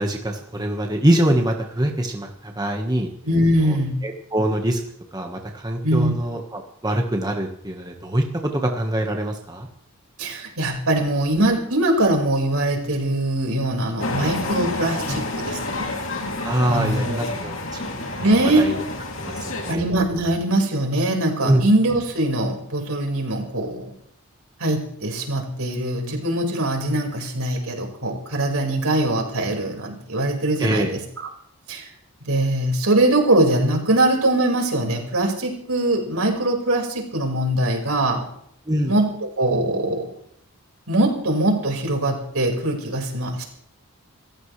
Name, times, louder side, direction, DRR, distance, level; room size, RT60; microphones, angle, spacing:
voice 1, 0.0-3.1 3.6-3.8 4.0-4.8 5.1-9.7 16.4-17.5 18.0-18.1 18.4-18.8 19.2-19.8 21.4-21.6 30.6-30.9 38.7-38.9, right 1 dB, 20° right, 2 dB, 1.4 m, -23 dB
voice 2, 3.2-3.9 5.8-6.1 10.2-15.9 16.7-17.2 18.2-18.7 19.7-23.8 24.6-31.0 31.7-31.9 32.2-38.2 38.9-40.1 40.9-43.4, right 1 dB, 80° right, 1 dB, 5.1 m, -22 dB
sound 1, 14.0-19.7, left 2 dB, 60° left, 2.9 m, -29 dB
28.0 x 14.5 x 3.3 m, 0.71 s
head